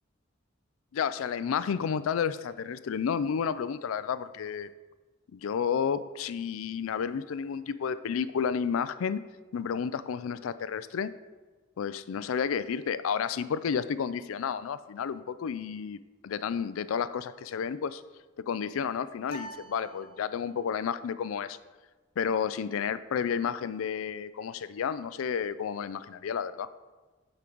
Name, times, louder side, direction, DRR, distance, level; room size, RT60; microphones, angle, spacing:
voice 1, 0.9-4.7 5.3-9.2 9.5-11.1 11.8-16.0 16.2-18.0 18.5-21.6 22.2-26.7, left 7 dB, 90° left, 14 dB, 0.4 m, -31 dB
sound 1, 19.3-20.7, right 1 dB, 45° left, 1.0 m, -46 dB
9.1 x 3.9 x 4.5 m, 1.3 s
head